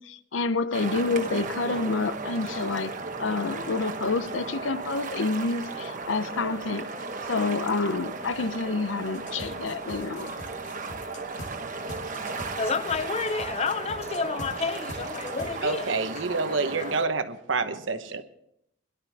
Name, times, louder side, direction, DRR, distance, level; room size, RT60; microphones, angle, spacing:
voice 1, 0.0-6.9 7.3-10.3, left 3 dB, 80° left, 0.7 m, -28 dB
sound 1, 0.7-17.1, right 3 dB, 40° right, 1.2 m, -35 dB
sound 2, 9.1-11.5 11.9-14.5 14.9-15.5, left 1 dB, 65° left, 2.6 m, -42 dB
voice 2, 12.6-16.9, left 5 dB, 35° left, 0.5 m, -31 dB
voice 3, 15.6-18.2, right 4 dB, 75° right, 1.0 m, -28 dB
22.5 x 11.5 x 3.5 m
head